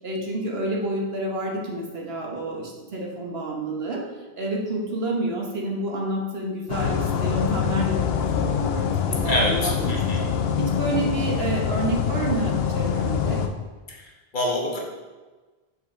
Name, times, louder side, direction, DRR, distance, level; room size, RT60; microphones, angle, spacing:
voice 1, 0.0-4.0 4.4-10.2 10.6-13.4, right 2 dB, 70° right, -1 dB, 1.4 m, -29 dB
sound 1, 6.7-13.5, left 7 dB, 75° left, 0.8 m, -25 dB
voice 2, 9.2-10.3 13.9-14.8, left 1 dB, 50° left, -2 dB, 1.3 m, -26 dB
6.6 x 5.5 x 3.8 m, 1.2 s
omnidirectional pair, 1.1 m